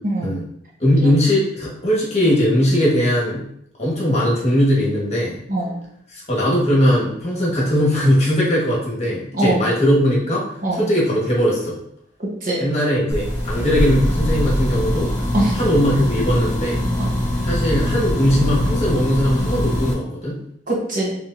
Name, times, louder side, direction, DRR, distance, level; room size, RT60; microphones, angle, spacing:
voice 1, 0.0-0.4 1.0-1.1 5.5-5.8 9.3-9.6 10.6-10.8 12.2-12.6 15.3-15.6 17.0-17.1 20.7-21.2, right 1 dB, 45° right, -3 dB, 1.1 m, -22 dB
voice 2, 0.8-3.4 3.8-5.4 6.1-11.8 12.6-15.1 15.5-16.8 17.4-20.4, equal, 35° left, -4 dB, 1.4 m, -19 dB
sound 1, 13.1-19.9, equal, 20° left, 1.6 m, -22 dB
4.6 x 3.5 x 2.6 m, 0.72 s
head